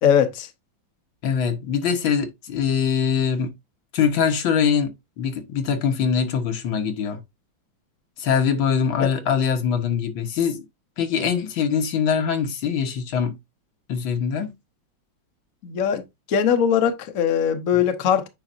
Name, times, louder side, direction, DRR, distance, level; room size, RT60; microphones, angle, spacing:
voice 1, 0.0-0.5 9.0-9.1 15.6-16.0 16.3-18.3, left 8 dB, 55° left, 1.1 m, -20 dB
voice 2, 1.2-3.5 3.9-7.2 8.2-10.6 11.0-13.3 13.9-14.5, left 7 dB, 80° left, 1.9 m, -23 dB
8.8 x 5.2 x 2.6 m
omnidirectional pair, 2.1 m